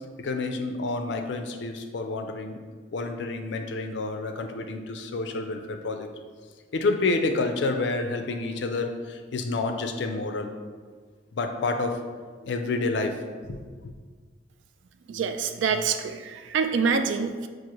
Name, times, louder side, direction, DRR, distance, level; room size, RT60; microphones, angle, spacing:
voice 1, 0.2-2.6 2.9-6.1 6.7-10.8 11.3-12.0 12.4-13.2 13.4-13.9, left 3 dB, 65° left, 6 dB, 0.4 m, -29 dB
voice 2, 15.1-17.5, right 5 dB, 70° right, 8 dB, 0.3 m, -26 dB
6.1 x 2.5 x 2.9 m, 1.6 s
head